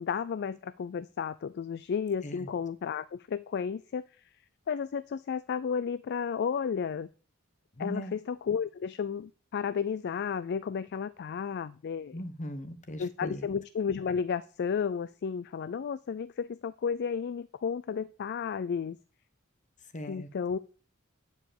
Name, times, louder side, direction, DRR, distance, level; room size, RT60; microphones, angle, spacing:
voice 1, 0.0-4.0 4.7-7.1 7.8-12.2 13.0-19.0 20.1-20.6, left 6 dB, 50° left, 15 dB, 0.4 m, -33 dB
voice 2, 7.8-8.1 12.1-13.5 19.9-20.3, equal, 35° left, 10 dB, 1.2 m, -39 dB
10.0 x 5.0 x 7.0 m, 0.40 s
head